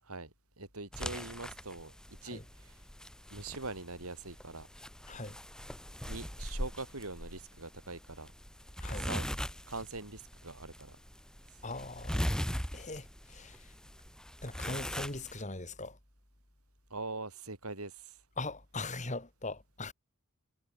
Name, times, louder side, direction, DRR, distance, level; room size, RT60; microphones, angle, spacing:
voice 1, 0.0-2.8 3.3-4.7 6.0-8.3 8.9-9.3 9.7-11.0 16.9-18.2, right 3 dB, 85° right, 5.1 m, -43 dB
sound 1, 0.9-15.4, equal, 5° left, 3.6 m, -40 dB
voice 2, 11.6-12.4 12.7-13.7 14.4-16.0 18.4-19.9, left 2 dB, 35° left, 3.9 m, -40 dB
head